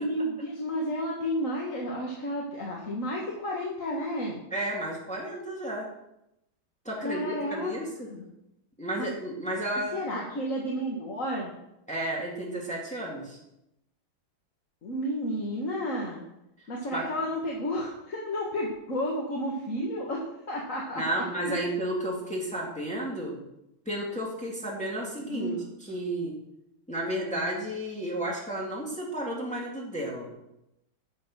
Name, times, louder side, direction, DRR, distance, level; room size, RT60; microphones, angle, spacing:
voice 1, 0.0-4.4 7.0-7.8 8.1-8.2 9.0-9.1 9.9-11.5 14.8-16.2 16.7-21.6 25.2-25.7, equal, 40° left, -2 dB, 1.8 m, -32 dB
voice 2, 4.5-5.9 6.8-8.1 8.8-10.0 11.9-13.4 16.9-17.1 21.0-23.4 23.9-25.5 25.8-26.4 26.9-30.3, right 1 dB, 5° left, -3 dB, 2.3 m, -32 dB
11.5 x 6.5 x 6.3 m, 0.85 s
omnidirectional pair, 2.2 m